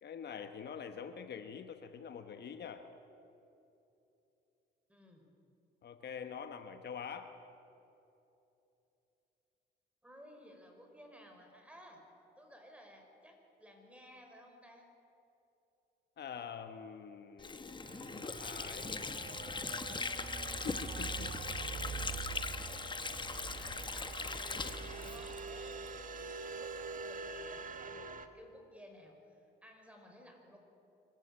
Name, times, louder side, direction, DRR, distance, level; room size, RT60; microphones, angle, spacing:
voice 1, 0.0-2.8 5.8-7.3 16.2-17.9 18.2-19.0 20.6-21.3 22.0-22.1, left 7 dB, 60° left, 8 dB, 1.2 m, -45 dB
voice 2, 4.9-5.3 10.0-12.0 12.4-14.9 22.5-30.6, equal, 5° right, 2 dB, 5.1 m, -57 dB
Water / Sink (filling or washing), 17.4-26.0, left 4 dB, 25° left, 1.0 m, -40 dB
sound 1, 17.8-28.3, right 5 dB, 40° right, 1.3 m, -45 dB
24.5 x 14.5 x 8.9 m, 2.9 s
cardioid pair, 90°, 20 cm